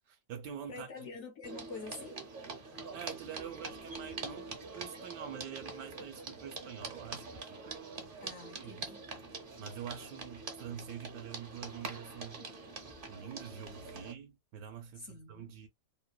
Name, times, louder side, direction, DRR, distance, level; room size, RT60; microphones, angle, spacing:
voice 1, 0.1-1.1 2.9-8.9 9.6-12.5 13.1-15.7, right 8 dB, 75° right, 1.2 m, -46 dB
voice 2, 0.7-2.2 8.2-9.0 14.9-15.5, left 4 dB, 70° left, 0.7 m, -46 dB
sound 1, 1.4-14.1, right 3 dB, 50° right, 0.6 m, -45 dB
3.2 x 2.3 x 2.2 m
omnidirectional pair, 1.9 m